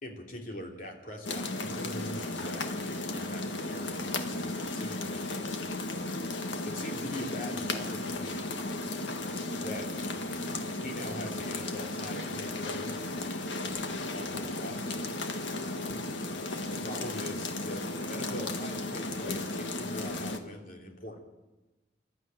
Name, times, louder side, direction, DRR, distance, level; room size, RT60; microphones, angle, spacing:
voice 1, 0.0-5.5 6.6-8.6 9.6-9.9 10.8-12.9 14.1-15.0 16.7-21.2, left 1 dB, 45° left, 1 dB, 3.1 m, -42 dB
sound 1, 1.2-20.4, left 2 dB, 75° left, 1.7 m, -35 dB
25.0 x 12.5 x 9.1 m, 1.1 s
head